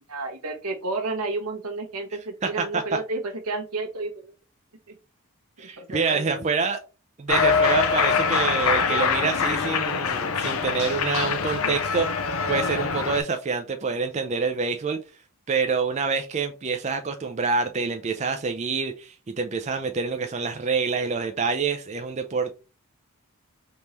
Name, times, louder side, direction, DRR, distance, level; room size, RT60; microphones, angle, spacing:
voice 1, 0.1-4.3 4.9-5.0 5.6-6.4, right 3 dB, 85° right, 4 dB, 1.2 m, -31 dB
voice 2, 2.4-2.8 5.6-6.8 7.2-15.0 15.5-22.5, right 5 dB, 30° right, 6 dB, 0.4 m, -27 dB
Cheering, 7.3-13.2, left 5 dB, 75° left, 0.6 m, -24 dB
3.6 x 3.1 x 4.1 m, 0.32 s
head